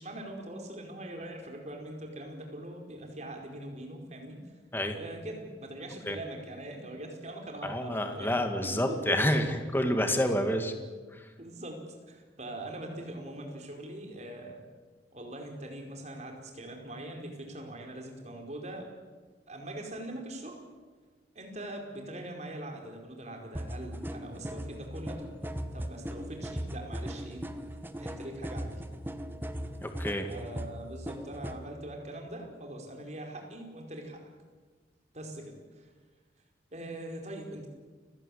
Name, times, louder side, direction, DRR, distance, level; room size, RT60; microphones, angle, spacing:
voice 1, 0.0-4.5 4.9-9.5 10.0-10.2 11.4-11.8 12.1-14.6 15.1-18.9 19.5-20.6 21.3-27.4 28.0-28.8 30.3-34.2 35.1-35.9 36.7-37.7, right 1 dB, 40° right, 2 dB, 4.9 m, -42 dB
voice 2, 7.6-9.4 9.7-10.7 11.1-11.2 29.8-30.3, left 1 dB, 10° left, 6 dB, 2.1 m, -28 dB
sound 1, 23.6-31.6, equal, 10° right, 1.3 m, -38 dB
29.5 x 16.5 x 8.7 m, 1.4 s
head